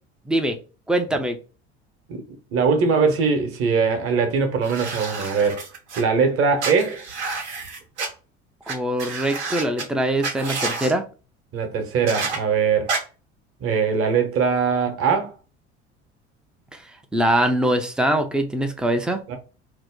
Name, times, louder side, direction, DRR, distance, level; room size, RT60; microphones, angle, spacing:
voice 1, 0.3-0.6 0.9-1.4 8.7-11.0 17.1-19.2, right 1 dB, 5° right, 0.3 m, -22 dB
voice 2, 2.5-5.6 6.0-7.0 11.5-12.9 13.6-15.3 19.3-19.4, right 5 dB, 40° right, 0.8 m, -21 dB
sound 1, 4.6-6.0 6.6-8.1 8.7-8.8 9.0-9.8 10.2-10.9 12.1-12.4 12.9-13.0, right 4 dB, 80° right, 0.7 m, -29 dB
2.6 x 2.1 x 3.5 m
figure-of-eight pair, 65°, 34 cm